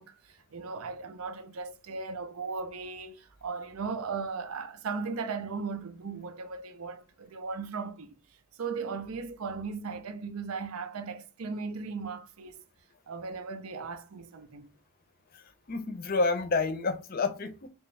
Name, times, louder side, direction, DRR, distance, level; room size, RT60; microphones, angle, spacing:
voice 1, 0.0-8.2 8.6-12.6 13.1-14.7, right 4 dB, 80° right, 0.5 m, -37 dB
voice 2, 15.7-17.7, left 3 dB, 45° left, 0.5 m, -29 dB
3.5 x 3.0 x 3.1 m
head